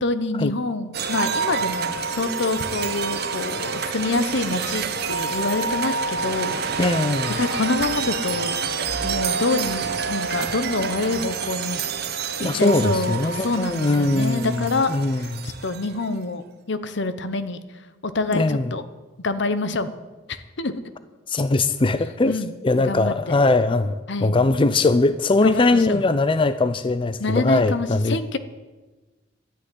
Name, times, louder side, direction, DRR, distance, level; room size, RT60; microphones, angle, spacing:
voice 1, 0.0-6.8 7.4-8.5 9.0-11.9 12.5-17.6 18.0-18.8 19.2-19.9 20.3-20.7 22.3-22.5 22.8-23.1 24.1-24.3 25.4-26.0 27.2-28.4, left 3 dB, 65° left, 1.0 m, -26 dB
sound 1, 0.9-16.0, right 5 dB, 60° right, 1.2 m, -28 dB
voice 2, 6.8-7.4 12.4-15.5 18.3-18.7 21.3-28.2, left 2 dB, 30° left, 0.5 m, -21 dB
12.5 x 9.8 x 9.8 m
head